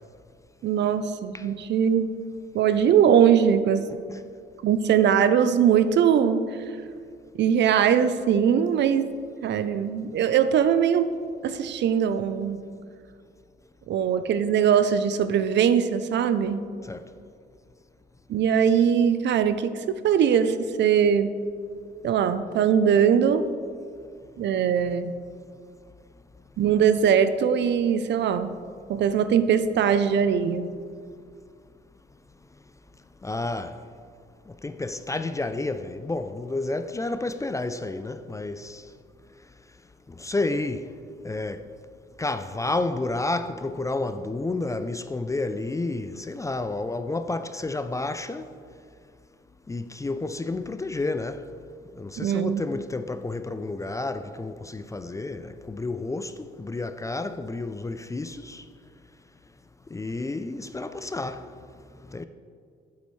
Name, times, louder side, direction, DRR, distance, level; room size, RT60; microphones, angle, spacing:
voice 1, 0.6-2.1 2.5-3.8 4.6-6.8 7.3-9.1 9.4-11.1 11.4-12.6 13.9-16.6 18.3-21.3 22.0-23.4 24.4-25.2 26.6-28.5 28.9-30.7 52.2-52.8, right 8 dB, 65° right, 0.5 m, -21 dB
voice 2, 33.2-33.7 34.6-38.8 40.2-40.8 41.2-41.6 42.2-48.4 49.7-51.4 52.0-56.3 56.6-58.6 59.9-61.4 62.1-62.2, left 2 dB, 15° left, 0.3 m, -30 dB
8.4 x 8.3 x 3.1 m
cardioid pair, 90°, 20 cm